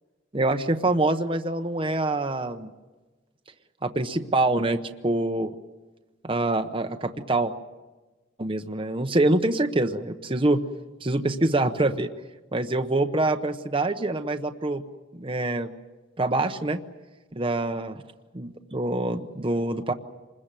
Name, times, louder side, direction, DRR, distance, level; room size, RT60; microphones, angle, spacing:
voice 1, 0.3-2.7 3.8-5.5 6.2-7.5 8.4-10.6 11.0-12.1 12.5-14.8 15.1-15.7 16.2-16.8 17.3-17.9 18.3-19.9, right 2 dB, 25° right, 6 dB, 0.9 m, -25 dB
26.5 x 21.5 x 7.6 m, 1.2 s
head